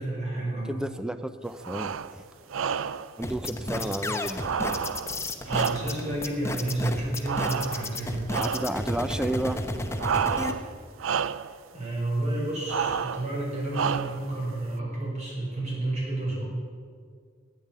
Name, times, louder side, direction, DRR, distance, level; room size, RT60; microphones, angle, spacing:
voice 1, 0.0-0.8 3.6-3.9 5.4-8.3 11.7-16.5, right 2 dB, 35° right, -3 dB, 4.9 m, -31 dB
voice 2, 0.7-2.2 3.2-4.5 8.4-9.6, right 1 dB, 5° right, 10 dB, 0.6 m, -31 dB
sound 1, 1.6-2.1 2.5-3.1 4.4-6.2 7.3-8.0 8.3-8.8 10.0-10.7 11.0-11.5 12.7-13.3 13.7-14.3, right 7 dB, 80° right, 0.5 m, -30 dB
sound 2, 3.2-10.5, left 2 dB, 15° left, 0.9 m, -32 dB
12.0 x 9.1 x 9.4 m, 2.1 s
head